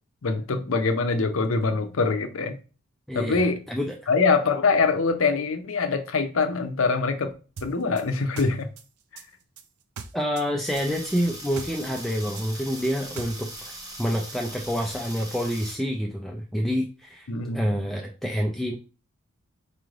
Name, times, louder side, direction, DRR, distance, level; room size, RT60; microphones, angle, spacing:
voice 1, 0.2-2.6 3.1-3.6 4.1-7.3 7.6-8.7 17.3-17.6, left 4 dB, 65° left, 0.6 m, -24 dB
voice 2, 3.1-4.0 10.1-17.3 17.5-18.8, equal, ahead, 0.4 m, -28 dB
sound 1, 7.6-10.5 10.8-13.7, right 5 dB, 85° right, 0.5 m, -41 dB
sound 2, 10.6-15.8, right 1 dB, 15° right, 0.7 m, -40 dB
4.7 x 3.2 x 2.4 m
head